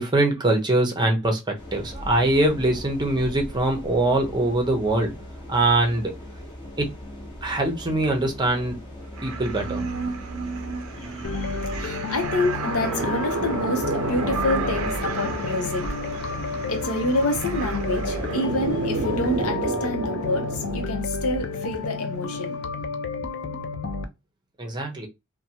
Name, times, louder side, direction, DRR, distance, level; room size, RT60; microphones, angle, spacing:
voice 1, 0.0-5.1 5.5-6.1 6.8-6.9 7.4-8.8 9.2-9.9 24.6-25.1, right 2 dB, 20° right, 0.7 m, -23 dB
sound 1, 1.6-19.5, left 1 dB, 20° left, 0.9 m, -40 dB
sound 2, 9.1-20.9, right 4 dB, 65° right, 0.5 m, -31 dB
voice 2, 10.9-22.6, left 1 dB, 75° left, 0.7 m, -28 dB
sound 3, 11.2-24.1, left 4 dB, 50° left, 0.4 m, -31 dB
2.8 x 2.2 x 2.8 m
head